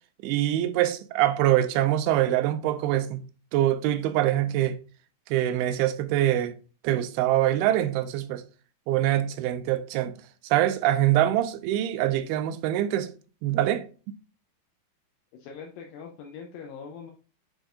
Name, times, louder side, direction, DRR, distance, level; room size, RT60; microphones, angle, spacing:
voice 1, 0.2-3.2 3.5-4.8 5.3-6.6 6.8-8.4 8.9-10.1 10.4-13.1 13.4-13.9, right 13 dB, 90° right, 2.6 m, -24 dB
voice 2, 15.3-17.1, left 6 dB, 80° left, 2.4 m, -42 dB
9.0 x 4.6 x 2.5 m
omnidirectional pair, 4.4 m